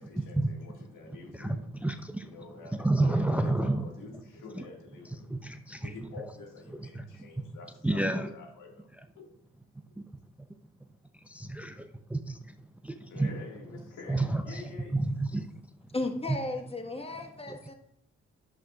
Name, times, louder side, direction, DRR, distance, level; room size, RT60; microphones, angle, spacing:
voice 1, 0.0-1.7 2.2-5.3 5.8-8.9 9.1-9.3 13.1-15.0, left 4 dB, 70° left, 0 dB, 2.1 m, -47 dB
voice 2, 1.8-2.3 2.7-3.8 4.6-4.7 5.3-5.9 6.7-7.0 7.8-8.3 10.0-10.1 11.2-12.5 12.8-13.3 14.1-14.6 14.9-15.5 17.5-17.6, right 2 dB, 5° right, 8 dB, 0.6 m, -30 dB
voice 3, 15.9-17.7, left 2 dB, 20° left, 3 dB, 1.6 m, -34 dB
10.5 x 7.6 x 2.5 m, 0.72 s
hypercardioid pair, 50°, 32 cm